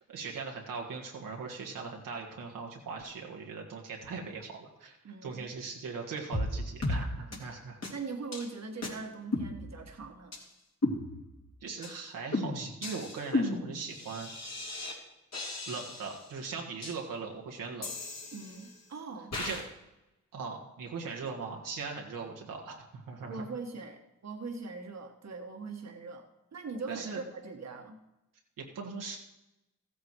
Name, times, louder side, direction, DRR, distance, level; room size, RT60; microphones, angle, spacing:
voice 1, 0.1-7.8 11.6-14.3 15.7-17.9 19.4-19.6 20.3-23.4 26.9-27.2 28.6-29.2, right 4 dB, 85° right, 0 dB, 1.7 m, -40 dB
voice 2, 5.0-5.5 7.3-7.4 7.9-10.3 18.3-19.3 23.3-26.2 26.5-28.0, right 4 dB, 55° right, 3 dB, 1.6 m, -41 dB
sound 1, 6.3-6.5 6.8-7.0 7.3-7.4 7.8-7.9 8.3-8.5 8.8-8.9 9.3-10.0 10.3-10.4 10.8-11.4 11.8-12.0 12.3-15.0 15.3-16.2 16.8-16.9 17.8-18.8 19.3-19.6, left 2 dB, 55° left, 3.0 m, -34 dB
14.5 x 8.4 x 4.7 m, 0.94 s
supercardioid pair, 45°, 32 cm